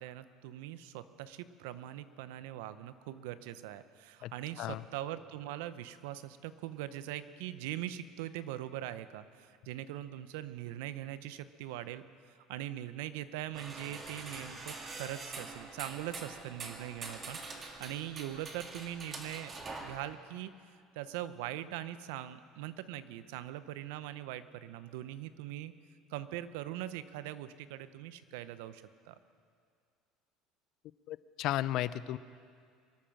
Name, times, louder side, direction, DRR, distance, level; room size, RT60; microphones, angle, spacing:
voice 1, 0.0-12.0 12.3-19.5 19.8-20.5 20.9-25.7 26.1-29.2, right 13 dB, 85° right, 14 dB, 0.7 m, -42 dB
sound 1, 13.5-20.0, right 3 dB, 30° right, 1.9 m, -45 dB
voice 2, 31.1-32.2, left 14 dB, 60° left, 17 dB, 0.5 m, -34 dB
23.5 x 8.7 x 6.4 m, 2.2 s
cardioid pair, 120°, 0 cm